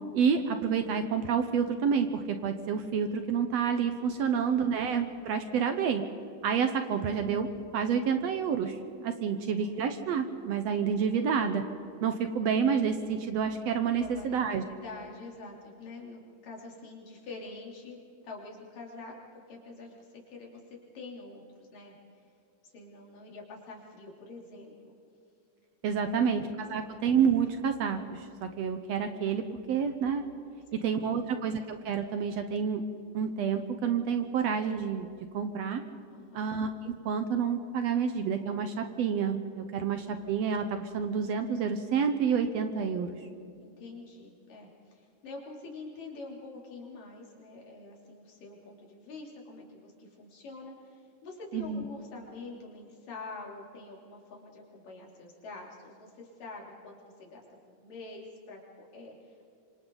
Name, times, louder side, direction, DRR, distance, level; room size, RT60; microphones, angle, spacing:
voice 1, 0.1-6.0 6.4-7.5 7.7-11.6 12.0-14.6 25.8-30.2 30.8-32.8 33.1-35.1 35.3-35.8 36.3-43.1 51.5-51.8, right 6 dB, 70° right, 7 dB, 1.8 m, -29 dB
voice 2, 4.2-4.7 6.9-7.1 9.4-9.7 14.0-14.4 14.7-18.0 18.2-20.6 20.9-21.9 22.6-24.9 26.0-27.0 30.7-31.2 36.1-36.5 43.6-59.5, left 3 dB, 85° left, -2 dB, 5.0 m, -46 dB
26.5 x 26.0 x 4.0 m, 2.6 s
omnidirectional pair, 3.7 m